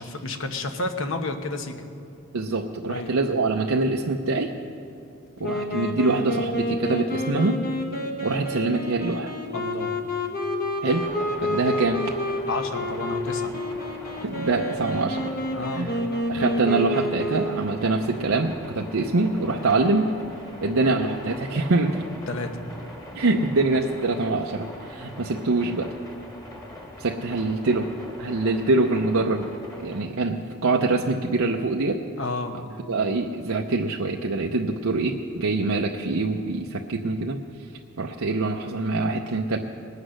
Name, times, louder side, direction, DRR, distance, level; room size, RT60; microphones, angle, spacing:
voice 1, 0.0-1.9 2.9-3.1 9.5-9.9 12.5-13.5 15.5-15.9 22.3-22.5 32.2-32.5, left 2 dB, 65° left, 6 dB, 1.1 m, -30 dB
voice 2, 2.3-4.5 5.4-7.6 8.2-9.3 10.8-11.1 11.4-12.0 14.2-15.3 15.7-15.9 16.3-20.1 20.6-22.0 23.1-25.9 27.0-27.9 28.2-29.5 29.8-32.0 32.9-37.4 38.0-39.6, right 3 dB, 75° right, 1 dB, 0.7 m, -24 dB
Wind instrument woodwind instrument, 5.4-17.9, left 1 dB, 45° left, 1.2 m, -29 dB
sound 1, 10.8-30.0, left 1 dB, 20° left, 1.8 m, -42 dB
20.0 x 8.2 x 6.4 m, 2.6 s
head